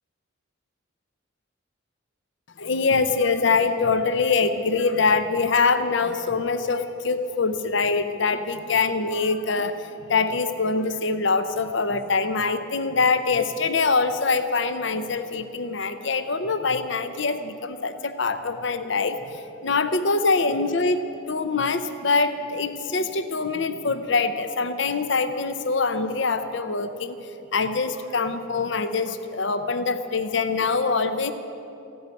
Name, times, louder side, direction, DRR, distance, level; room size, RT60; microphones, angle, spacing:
voice 1, 2.6-27.2 27.5-31.3, left 4 dB, 60° left, 10 dB, 0.7 m, -24 dB
15.5 x 9.4 x 9.5 m, 2.8 s
head